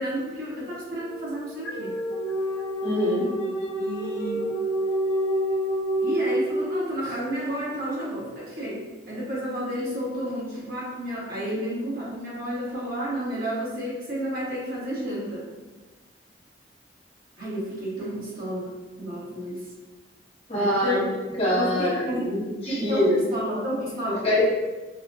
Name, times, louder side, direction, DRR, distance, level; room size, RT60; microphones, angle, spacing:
voice 1, 0.0-1.9 3.8-4.4 6.0-8.8 9.1-15.4 17.4-18.7 19.0-19.6 20.5-21.1 21.5-22.3 22.7-24.2, equal, 50° right, -7 dB, 1.3 m, -31 dB
sound 1, 1.0-7.3, equal, 75° left, 0.6 m, -28 dB
voice 2, 2.8-3.3 20.5-21.0 21.4-23.2 24.2-24.4, left 1 dB, 30° left, -7 dB, 1.0 m, -24 dB
4.9 x 2.2 x 2.5 m, 1.2 s
head